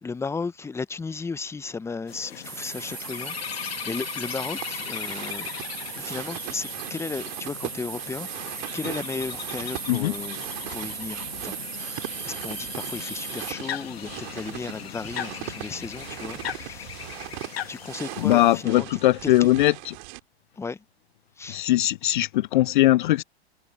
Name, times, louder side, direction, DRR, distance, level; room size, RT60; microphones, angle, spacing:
voice 1, 0.0-5.5 5.9-10.4 10.7-16.9 17.7-18.9 19.2-19.3 20.6-20.8 21.4-21.6, left 4 dB, 10° left, 1.1 m, -35 dB
sound 1, 2.1-18.6, left 10 dB, 65° left, 2.0 m, -38 dB
sound 2, 2.4-13.5, right 8 dB, 80° right, 1.1 m, -37 dB
sound 3, 4.5-20.2, right 26 dB, 45° right, 3.0 m, -40 dB
voice 2, 18.2-19.9 21.5-23.2, left 16 dB, 50° left, 0.6 m, -20 dB
figure-of-eight pair, 105°, 32 cm